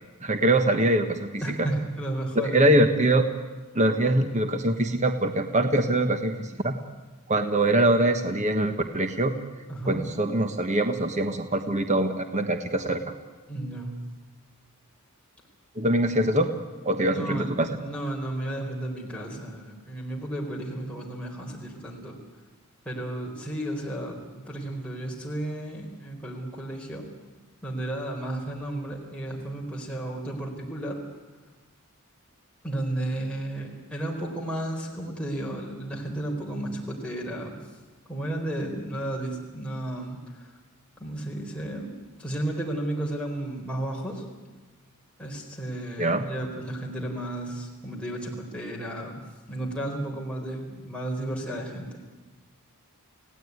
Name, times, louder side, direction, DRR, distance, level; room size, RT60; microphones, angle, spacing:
voice 1, 0.2-1.7 2.3-3.2 3.7-6.8 7.3-9.3 9.9-13.0 15.8-16.5 16.8-17.8 46.0-46.3, right 1 dB, 30° right, 7 dB, 1.3 m, -23 dB
voice 2, 1.4-2.8 9.7-10.1 13.5-13.9 17.1-22.2 22.8-27.0 27.6-31.0 32.6-37.6 38.1-40.5 41.0-41.9 42.2-44.2 45.2-49.2 49.5-52.0, right 1 dB, 5° left, -2 dB, 4.3 m, -33 dB
29.0 x 17.0 x 9.6 m, 1.2 s
head